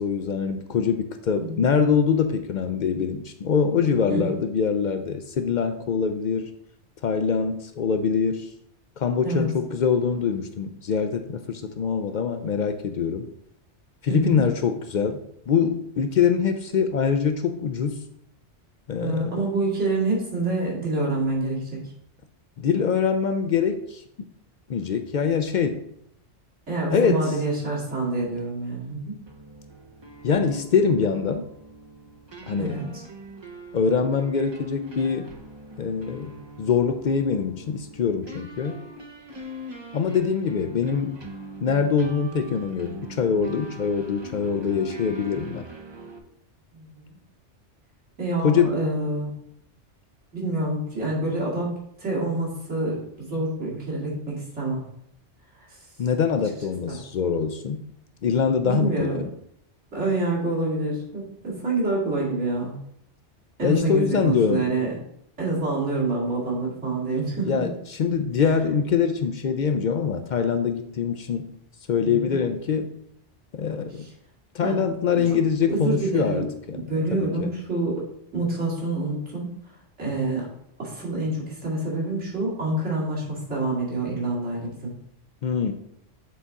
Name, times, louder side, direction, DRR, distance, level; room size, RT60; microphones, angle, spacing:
voice 1, 0.0-6.5 7.0-8.5 9.0-13.3 14.0-15.2 15.5-18.0 18.9-19.5 22.6-24.0 24.7-25.8 26.9-27.3 30.2-31.4 32.5-32.8 33.7-35.3 35.8-38.8 39.9-41.2 41.6-45.6 48.4-48.8 56.0-57.8 58.2-59.3 63.6-64.7 67.4-71.5 71.9-73.0 73.5-74.1 74.5-76.8 77.1-77.5 85.4-85.7, left 6 dB, 60° left, 8 dB, 0.5 m, -24 dB
voice 2, 14.1-14.4 19.0-21.8 26.7-29.1 32.6-33.0 46.7-47.1 48.2-49.3 50.3-54.8 55.6-55.7 58.6-59.2 59.9-62.7 63.6-64.9 65.4-67.7 72.0-72.3 74.0-74.1 74.6-74.8 75.1-75.2 75.7-76.5 76.7-78.0 78.3-79.5 80.0-80.5 80.8-84.9, right 2 dB, 75° right, -6 dB, 2.6 m, -27 dB
sound 1, 29.3-46.2, right 1 dB, 30° right, 0.5 m, -42 dB
7.6 x 4.1 x 3.6 m, 0.72 s
omnidirectional pair, 1.2 m